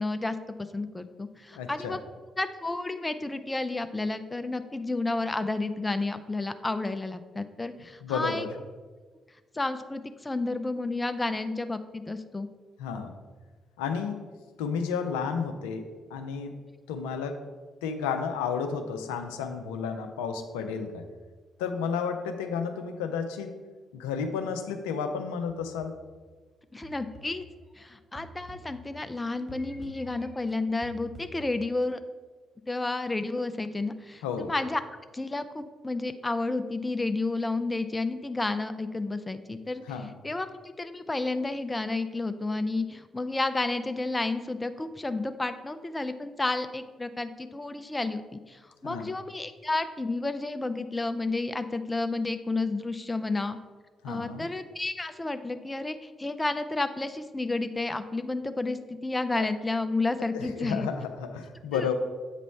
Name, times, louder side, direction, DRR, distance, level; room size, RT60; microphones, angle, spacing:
voice 1, 0.0-2.0 2.4-8.4 9.5-12.5 26.7-27.4 27.8-32.0 32.7-34.8 35.1-39.8 40.2-40.5 40.8-53.6 54.0-60.9 61.7-61.8, left 2 dB, 20° left, 10 dB, 0.5 m, -31 dB
voice 2, 1.5-2.0 8.0-8.5 12.8-13.1 13.8-14.3 14.6-15.8 16.1-16.5 16.9-17.4 17.8-21.0 21.6-23.5 23.9-25.9 34.2-34.5 39.9-40.1 48.8-49.1 54.0-54.4 59.4-59.5 60.3-61.9, left 6 dB, 75° left, 6 dB, 0.5 m, -32 dB
sound 1, 25.5-26.2 26.8-29.2 29.5-31.8, right 1 dB, 15° right, 2.0 m, -49 dB
8.0 x 3.1 x 5.4 m, 1.4 s
figure-of-eight pair, 40°, 0 cm